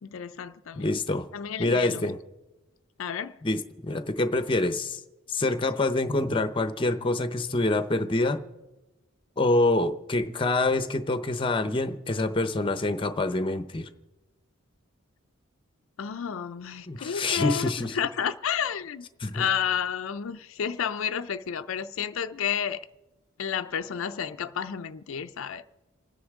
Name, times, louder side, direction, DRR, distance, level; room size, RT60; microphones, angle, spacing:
voice 1, 0.0-1.0 1.3-2.0 3.0-3.4 16.0-19.1 19.3-22.8 23.4-25.7, left 8 dB, 70° left, 0.4 m, -31 dB
voice 2, 0.7-1.3 1.6-2.2 3.4-5.0 5.3-8.4 9.4-13.9 16.9-17.9 19.2-19.4, left 2 dB, 25° left, 0.7 m, -26 dB
28.0 x 9.8 x 3.6 m
head